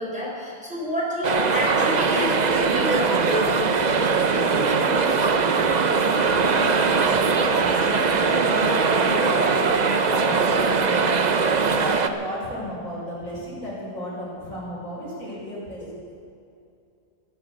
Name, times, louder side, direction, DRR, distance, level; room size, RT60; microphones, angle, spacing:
voice 1, 0.0-5.6 9.0-9.3, equal, 5° right, -4 dB, 4.0 m, -30 dB
sound 1, 1.2-12.1, right 4 dB, 40° right, 0.7 m, -21 dB
voice 2, 5.8-16.3, equal, 80° left, -5 dB, 5.3 m, -34 dB
14.5 x 10.5 x 8.1 m, 2.5 s
omnidirectional pair, 1.4 m